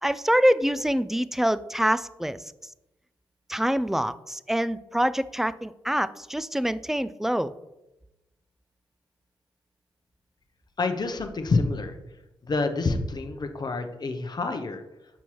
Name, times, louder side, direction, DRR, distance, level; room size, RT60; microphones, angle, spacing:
voice 1, 0.0-2.4 3.5-7.5, equal, 5° right, 15 dB, 0.3 m, -25 dB
voice 2, 10.8-12.0 12.4-14.8, left 3 dB, 45° left, 6 dB, 0.7 m, -27 dB
7.0 x 4.5 x 3.0 m, 0.95 s
cardioid pair, 55°, 10 cm